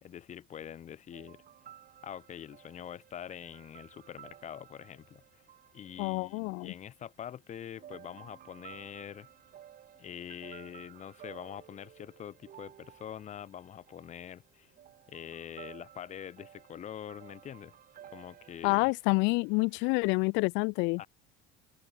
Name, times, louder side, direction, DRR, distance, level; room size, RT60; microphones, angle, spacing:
voice 1, 0.0-1.4 2.0-5.4 5.7-9.3 10.0-14.7 15.1-17.7 18.1-18.9 21.0-21.1, left 9 dB, 40° left, 1.3 m, -45 dB
sound 1, 1.1-7.1 7.7-20.0, right 10 dB, 45° right, 5.6 m, -55 dB
voice 2, 6.0-6.7 18.6-21.1, left 29 dB, 75° left, 0.6 m, -28 dB
open air
supercardioid pair, 110°, 19 cm